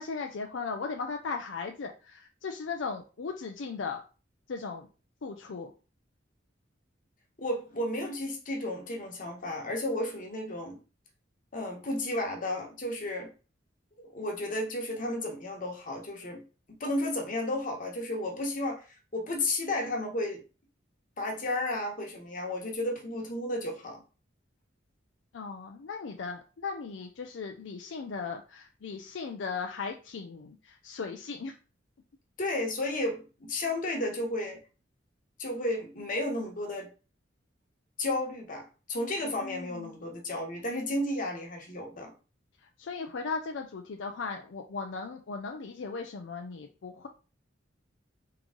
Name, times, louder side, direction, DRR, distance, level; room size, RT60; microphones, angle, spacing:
voice 1, 0.0-4.0 4.5-4.9 5.2-5.7 25.3-31.6 39.4-39.9 42.8-47.1, left 4 dB, 80° left, 0.5 m, -37 dB
voice 2, 7.4-10.8 11.5-13.3 14.1-16.4 16.8-18.8 19.1-20.4 21.2-24.0 32.4-34.6 35.4-36.9 38.0-42.1, left 1 dB, 45° left, 1.2 m, -33 dB
3.8 x 3.1 x 3.7 m
head